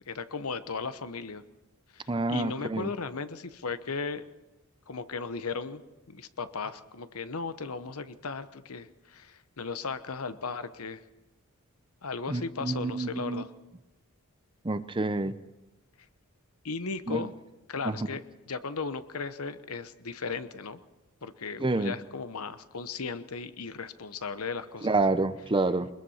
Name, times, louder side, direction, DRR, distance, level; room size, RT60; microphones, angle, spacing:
voice 1, 0.1-1.4 2.3-4.3 4.9-5.8 6.1-11.0 12.0-13.5 16.6-17.3 17.7-18.2 18.5-20.8 21.2-24.9, left 4 dB, 75° left, 12 dB, 1.0 m, -36 dB
voice 2, 2.1-2.9 12.3-13.5 14.6-15.4 17.1-17.3 17.8-18.1 21.6-21.9 24.8-25.9, right 2 dB, 20° right, 13 dB, 0.7 m, -28 dB
22.0 x 21.0 x 5.7 m, 1.0 s
head